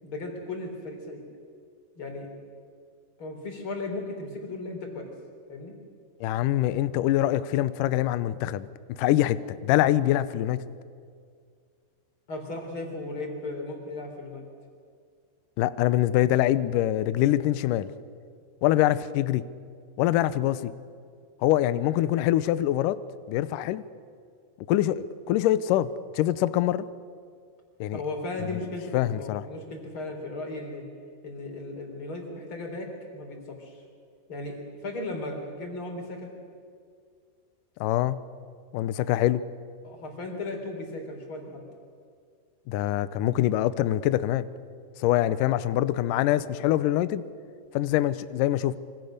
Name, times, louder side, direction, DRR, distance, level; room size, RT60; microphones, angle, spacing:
voice 1, 0.0-1.2 2.0-2.3 3.2-5.1 5.5-5.7 12.3-14.4 27.9-30.8 31.2-33.8 34.3-36.3 39.8-41.6, left 2 dB, 30° left, 3 dB, 4.4 m, -36 dB
voice 2, 6.2-10.8 15.6-17.9 18.6-19.5 20.0-20.7 21.4-23.0 23.3-23.8 24.7-26.9 27.8-28.0 28.9-29.4 37.8-38.2 38.7-39.4 42.7-44.5 45.0-47.3 47.7-48.8, left 13 dB, 85° left, 15 dB, 1.9 m, -24 dB
26.5 x 25.0 x 6.6 m, 2.2 s
omnidirectional pair, 4.7 m